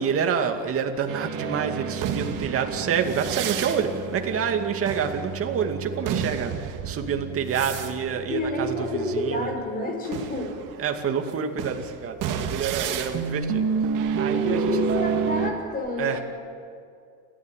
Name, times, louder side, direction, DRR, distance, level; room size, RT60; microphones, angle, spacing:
voice 1, 0.0-9.5 10.8-14.7 16.0-16.2, right 7 dB, 40° right, 4 dB, 2.3 m, -28 dB
sound 1, 1.1-9.5 10.0-15.5, right 6 dB, 60° right, 2.2 m, -30 dB
voice 2, 8.3-10.6 14.3-16.2, left 2 dB, 25° left, 2 dB, 5.4 m, -29 dB
30.0 x 14.0 x 9.2 m, 2.3 s
cardioid pair, 150°, 36 cm